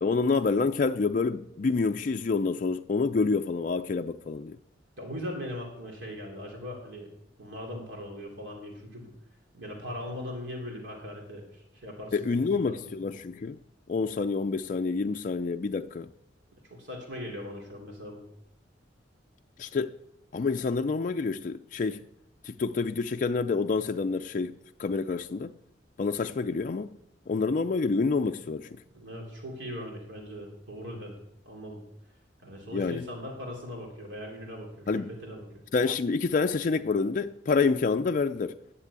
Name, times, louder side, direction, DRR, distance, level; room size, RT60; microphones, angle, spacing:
voice 1, 0.0-4.6 12.1-13.6 13.9-16.1 19.6-19.9 20.3-22.0 22.4-25.5 26.0-27.0 27.3-28.7 32.7-33.0 34.9-35.1 35.7-38.6, left 4 dB, 45° left, 0.4 m, -28 dB
voice 2, 5.0-7.1 7.4-9.1 9.5-12.8 16.6-18.2 28.9-31.2 31.4-31.8 32.4-35.5, left 1 dB, 80° right, 3.1 m, -40 dB
10.5 x 7.5 x 8.2 m
head